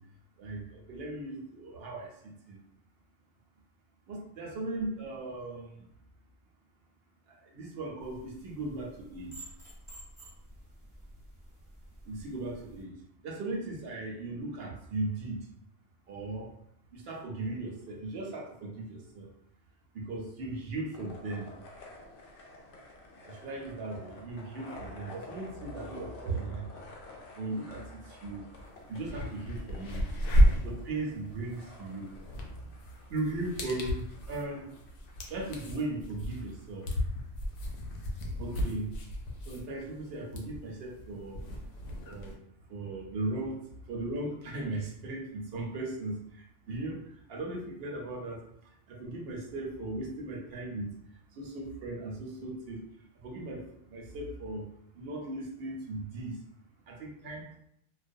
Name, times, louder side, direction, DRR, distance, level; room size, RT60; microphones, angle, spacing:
voice 1, 0.4-2.1 2.5-2.6 4.1-5.8 7.3-9.5 12.1-12.9 13.2-15.5 16.1-16.5 16.9-19.3 19.9-21.5 23.2-26.8 27.4-28.4 28.9-30.0 30.6-32.1 33.1-34.7 35.3-36.9 38.4-38.9 39.5-41.4 42.0-42.3 42.7-43.6 43.9-46.2 46.7-47.0 47.3-48.4 48.9-50.9 51.4-52.8 53.2-54.6 54.9-56.4 56.9-57.6, right 2 dB, 65° right, 0 dB, 0.7 m, -37 dB
sound 1, 8.0-12.8, right 1 dB, 5° left, 0.7 m, -51 dB
sound 2, 20.9-38.7, left 2 dB, 60° left, 0.7 m, -51 dB
sound 3, 28.5-28.6 29.0-42.3, equal, 85° left, 0.9 m, -32 dB
2.3 x 2.2 x 2.5 m, 0.72 s
omnidirectional pair, 1.2 m